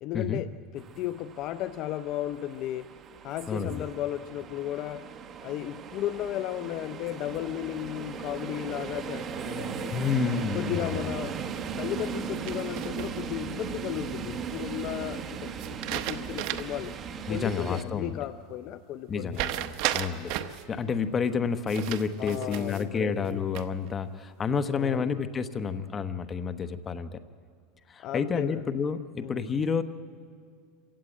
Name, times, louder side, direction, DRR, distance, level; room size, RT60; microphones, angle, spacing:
voice 1, 0.0-3.0 3.2-5.1 5.4-10.0 10.5-11.4 11.8-17.0 17.3-19.4 22.2-23.4 24.7-25.2 28.0-28.7 29.2-29.5, left 13 dB, 45° left, 12 dB, 0.5 m, -35 dB
sound 1, 0.8-17.8, right 6 dB, 30° right, 1.3 m, -38 dB
voice 2, 3.5-3.8 9.9-11.1 17.3-18.2 19.1-27.2 27.9-29.8, left 5 dB, 20° left, 10 dB, 0.9 m, -30 dB
sound 2, 12.5-13.4 15.6-16.9 17.2-17.3 19.3-20.6 21.7-22.9 23.3-23.9, right 14 dB, 55° right, 1.0 m, -34 dB
26.5 x 16.5 x 9.0 m, 2.2 s
supercardioid pair, 150°, 0 cm